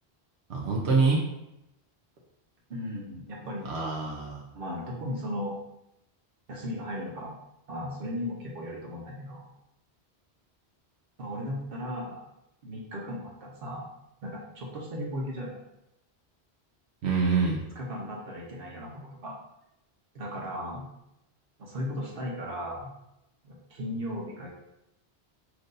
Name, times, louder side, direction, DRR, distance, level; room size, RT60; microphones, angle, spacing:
voice 1, 0.5-1.2 3.7-4.5 17.0-17.6, right 4 dB, 80° right, -2 dB, 1.0 m, -25 dB
voice 2, 2.7-3.9 4.5-5.5 6.5-7.4 7.7-9.5 11.2-12.2 12.6-13.9 14.2-15.6 17.7-19.3 20.1-20.9 21.6-22.9 23.4-24.5, equal, 60° right, -3 dB, 1.2 m, -36 dB
6.1 x 2.6 x 2.6 m, 0.87 s
omnidirectional pair, 1.1 m